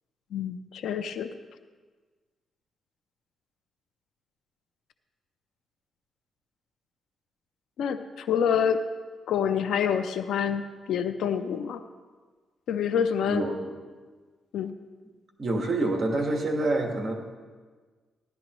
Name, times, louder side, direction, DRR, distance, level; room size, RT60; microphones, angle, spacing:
voice 1, 0.3-1.3 7.8-8.9 9.3-11.8 12.7-13.5 14.5-14.8, left 8 dB, 80° left, 9 dB, 0.5 m, -27 dB
voice 2, 13.3-13.6 15.4-17.1, right 2 dB, 40° right, 2 dB, 1.4 m, -26 dB
16.0 x 11.5 x 3.0 m, 1.4 s
cardioid pair, 150°, 0 cm